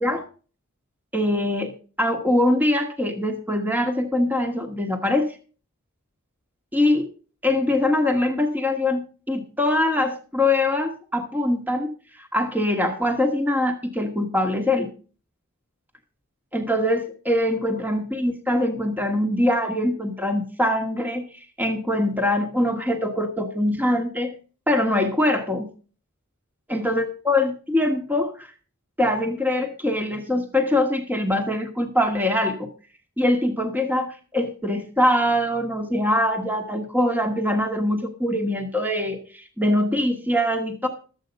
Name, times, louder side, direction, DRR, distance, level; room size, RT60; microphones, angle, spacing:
voice 1, 1.1-1.7 2.0-5.2 6.7-7.1 7.4-9.0 9.3-11.9 12.1-14.9 16.5-24.3 24.7-25.7 26.7-28.5 29.0-32.7 33.2-40.9, left 1 dB, 10° right, 3 dB, 1.3 m, -23 dB
13.0 x 8.0 x 5.2 m, 0.39 s
head